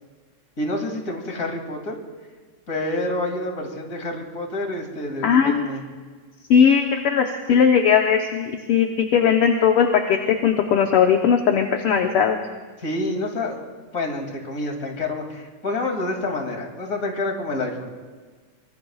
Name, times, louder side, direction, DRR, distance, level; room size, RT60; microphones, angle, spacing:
voice 1, 0.6-2.0 2.7-5.8 12.8-13.7 13.9-17.9, left 2 dB, 30° left, 2 dB, 2.7 m, -28 dB
voice 2, 5.2-5.6 6.5-12.4, left 7 dB, 65° left, 3 dB, 1.6 m, -18 dB
24.5 x 23.5 x 2.4 m, 1.5 s
omnidirectional pair, 3.3 m